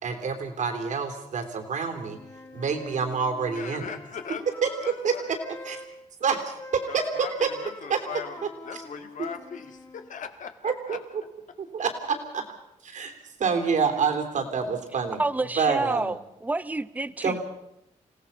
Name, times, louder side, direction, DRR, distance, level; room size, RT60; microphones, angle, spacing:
voice 1, 0.0-2.2 2.5-3.9 4.6-5.4 5.6-5.8 6.2-7.5 7.9-8.0 8.4-8.8 9.2-9.3 10.6-11.0 11.6-12.4 12.8-13.1 13.4-15.2 15.6-16.1 17.2-17.4, right 5 dB, 70° right, 6 dB, 3.3 m, -27 dB
Wind instrument woodwind instrument, 2.0-5.9 6.6-10.1, left 2 dB, 30° left, 2.8 m, -44 dB
voice 2, 3.5-4.4 4.8-5.2 6.9-11.0, left 7 dB, 80° left, 8 dB, 2.1 m, -39 dB
voice 3, 15.2-17.4, right 2 dB, 10° right, 15 dB, 0.7 m, -29 dB
28.5 x 17.5 x 5.6 m, 0.82 s
wide cardioid pair, 130°, 13 cm